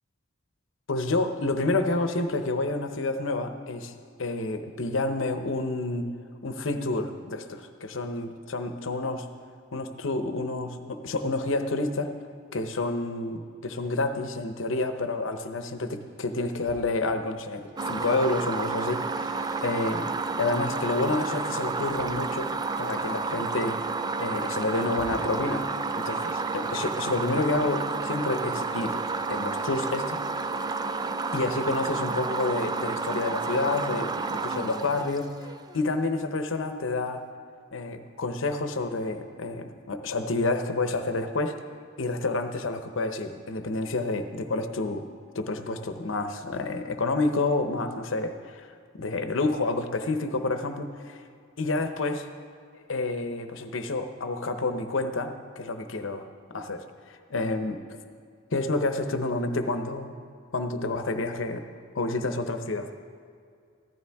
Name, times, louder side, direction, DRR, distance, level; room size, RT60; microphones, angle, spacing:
voice 1, 0.9-6.1 6.4-9.3 9.7-12.1 12.5-20.1 20.4-22.5 22.8-23.8 24.2-25.6 26.0-29.0 29.3-30.2 31.3-35.3 35.7-37.2 37.7-41.5 42.0-45.1 45.3-48.7 48.9-51.2 51.6-52.3 52.9-57.8 58.5-60.1 60.5-61.7 61.9-62.9, left 2 dB, 70° left, 8 dB, 0.8 m, -29 dB
sound 1, 13.7-26.0 26.2-27.9, right 1 dB, 70° right, 3.5 m, -53 dB
sound 2, 17.8-35.7, right 4 dB, 20° right, 0.3 m, -31 dB
15.0 x 12.5 x 3.5 m, 2.3 s
head